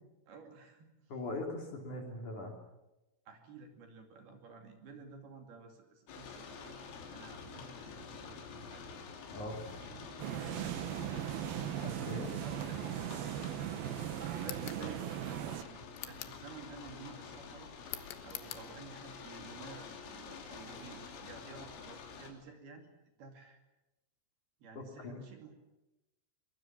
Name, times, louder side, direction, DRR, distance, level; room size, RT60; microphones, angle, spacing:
voice 1, 0.3-1.2 3.3-9.0 9.6-11.4 12.4-13.2 14.3-17.7 18.2-22.9 23.2-23.6 24.6-25.6, right 5 dB, 55° right, 4 dB, 4.1 m, -52 dB
voice 2, 1.1-2.5 9.3-9.6 11.8-12.4 25.0-25.2, left 2 dB, 45° left, 2 dB, 4.2 m, -41 dB
sound 1, 6.1-22.3, left 5 dB, 85° left, 5.6 m, -48 dB
sound 2, 10.2-15.6, right 12 dB, 75° right, 2.3 m, -38 dB
sound 3, 14.4-14.8 15.9-16.4 17.9-18.7, left 14 dB, 70° left, 3.2 m, -44 dB
23.5 x 22.5 x 7.5 m, 0.96 s
omnidirectional pair, 5.6 m